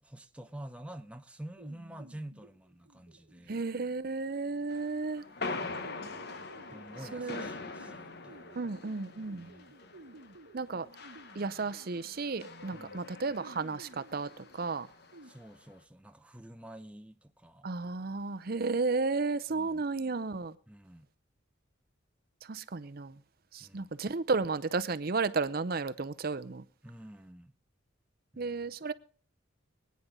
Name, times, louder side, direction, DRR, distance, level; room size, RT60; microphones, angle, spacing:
voice 1, 0.0-3.6 5.4-5.8 6.7-8.7 9.3-9.7 12.7-13.1 15.2-17.7 19.5-19.8 20.7-21.1 23.6-23.9 26.8-27.5 28.3-28.6, right 1 dB, 5° right, 0.6 m, -48 dB
sound 1, 1.6-15.3, right 2 dB, 65° right, 1.1 m, -56 dB
voice 2, 3.5-5.2 7.1-7.5 8.5-9.5 10.5-10.9 11.3-14.9 17.6-20.6 22.4-23.2 23.5-26.6 28.4-28.9, right 4 dB, 50° right, 0.6 m, -33 dB
sound 2, 4.7-15.6, left 3 dB, 55° left, 1.1 m, -44 dB
24.5 x 9.5 x 3.7 m
head